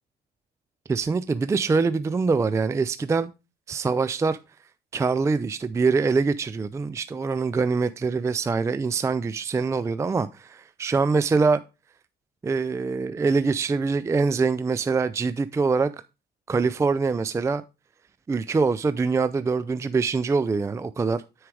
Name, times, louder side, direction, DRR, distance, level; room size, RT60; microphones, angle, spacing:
voice 1, 0.9-3.3 3.7-4.4 4.9-11.6 12.4-15.9 16.5-17.6 18.3-21.2, right 4 dB, 15° right, 0.4 m, -24 dB
9.6 x 4.7 x 4.7 m
cardioid pair, 110°, 17 cm